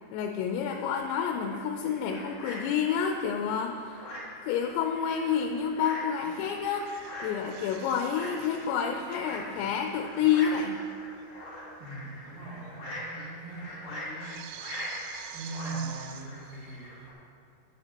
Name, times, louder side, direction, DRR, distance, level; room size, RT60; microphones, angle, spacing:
voice 1, 0.1-4.1 4.4-6.9 7.2-10.8, left 7 dB, 85° left, 3 dB, 2.9 m, -29 dB
sound 1, 0.7-17.1, left 1 dB, 35° left, 3.2 m, -43 dB
sound 2, 5.8-6.1 6.3-10.9 11.2-11.3 11.9-12.0 12.3-17.1, right 10 dB, 85° right, 2.7 m, -48 dB
voice 2, 11.8-14.2 15.3-17.0, right 3 dB, 55° right, -7 dB, 3.6 m, -40 dB
11.5 x 10.0 x 2.9 m, 2.3 s
omnidirectional pair, 5.1 m